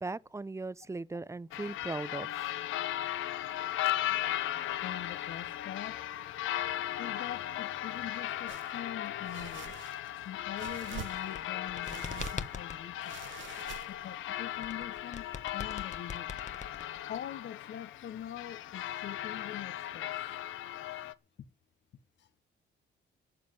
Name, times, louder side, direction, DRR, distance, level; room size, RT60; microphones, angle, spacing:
voice 1, 0.0-2.5, right 3 dB, 15° right, 0.6 m, -38 dB
sound 1, 1.5-21.1, left 13 dB, 85° left, 1.0 m, -37 dB
voice 2, 4.8-6.0 7.0-9.7 10.2-13.2 13.9-16.4 17.1-20.1 22.2-22.3, left 10 dB, 65° left, 1.3 m, -44 dB
sound 2, 8.5-8.7 9.2-10.1 10.6-11.5 11.8-12.6 13.0-14.1, right 11 dB, 75° right, 1.0 m, -46 dB
sound 3, 11.1-12.8 14.6-17.2, left 5 dB, 35° left, 1.3 m, -41 dB
12.5 x 7.6 x 9.4 m
cardioid pair, 90°, 20 cm